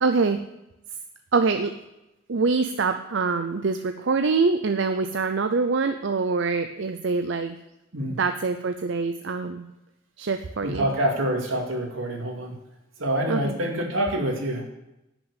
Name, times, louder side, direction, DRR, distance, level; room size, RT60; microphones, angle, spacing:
voice 1, 0.0-0.4 1.3-1.7 2.3-7.6 8.2-9.7 10.2-10.9 13.3-13.5, right 4 dB, 60° right, 8 dB, 0.5 m, -24 dB
voice 2, 10.6-12.6 13.0-14.6, right 1 dB, 80° right, 1 dB, 2.5 m, -26 dB
10.5 x 6.1 x 8.1 m, 0.92 s
head